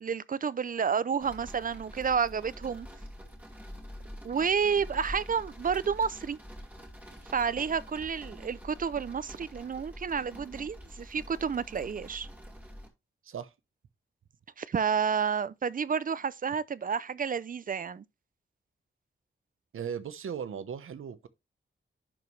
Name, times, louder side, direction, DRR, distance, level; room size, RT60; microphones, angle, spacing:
voice 1, 0.0-2.9 4.2-6.4 7.3-12.3 14.6-18.0, right 6 dB, 40° right, 0.4 m, -30 dB
sound 1, 1.2-12.9, equal, 5° right, 2.3 m, -46 dB
voice 2, 19.7-21.3, right 7 dB, 85° right, 0.8 m, -37 dB
10.5 x 4.7 x 3.2 m
wide cardioid pair, 120°, 21 cm